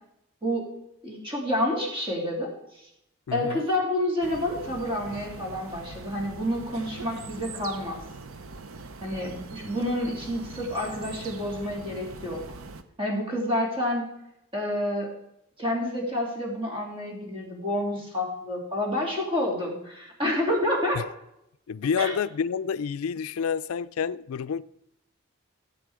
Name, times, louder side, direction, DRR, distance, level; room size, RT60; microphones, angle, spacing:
voice 1, 1.0-2.9 3.3-8.0 9.0-12.4 13.0-14.1 14.5-15.1 15.6-21.0 22.0-22.1, left 1 dB, 25° right, 3.2 m, -29 dB
voice 2, 3.3-3.6 21.0-21.1 21.7-24.6, left 6 dB, 75° left, 0.4 m, -29 dB
sound 1, 4.2-12.8, right 3 dB, 70° right, 0.8 m, -42 dB
16.5 x 8.6 x 5.0 m
head